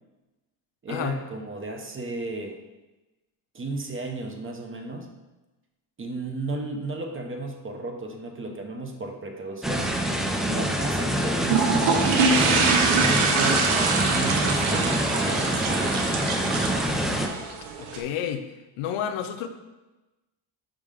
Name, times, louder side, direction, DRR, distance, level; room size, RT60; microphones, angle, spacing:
voice 1, 0.8-2.6 3.5-5.1 6.0-10.0 10.4-15.9, right 2 dB, 25° right, 4 dB, 0.7 m, -34 dB
sound 1, 9.6-17.3, right 1 dB, ahead, 0.3 m, -26 dB
sound 2, 11.4-18.0, right 4 dB, 85° right, 0.9 m, -24 dB
voice 2, 17.8-18.4 18.8-19.5, left 9 dB, 80° left, 8 dB, 0.7 m, -30 dB
5.3 x 3.7 x 4.9 m, 1.1 s
cardioid pair, 120°, 48 cm